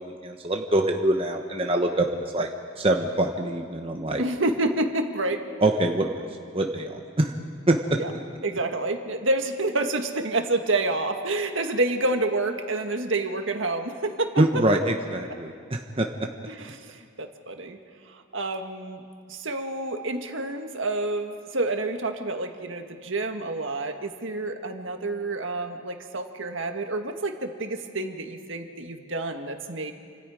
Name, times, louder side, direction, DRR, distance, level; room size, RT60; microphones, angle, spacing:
voice 1, 0.0-2.5 2.8-4.2 5.6-6.2 6.5-7.4 7.7-7.8 14.4-16.1, right 1 dB, 25° right, 3 dB, 1.0 m, -24 dB
voice 2, 4.2-5.4 8.0-8.1 8.4-14.6 16.5-17.8 18.1-19.0 19.3-29.9, right 2 dB, 65° right, 5 dB, 1.7 m, -28 dB
28.5 x 26.0 x 5.0 m, 2.2 s
head